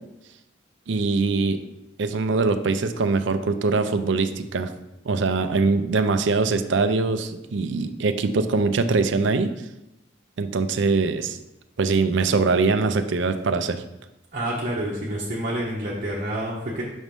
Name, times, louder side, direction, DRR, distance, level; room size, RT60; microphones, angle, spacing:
voice 1, 0.9-1.6 2.0-4.7 5.1-9.5 10.4-11.4 11.8-13.8, right 4 dB, 65° right, 9 dB, 0.4 m, -22 dB
voice 2, 14.3-16.8, right 1 dB, 40° right, -5 dB, 1.0 m, -28 dB
6.3 x 3.1 x 5.3 m, 0.91 s
head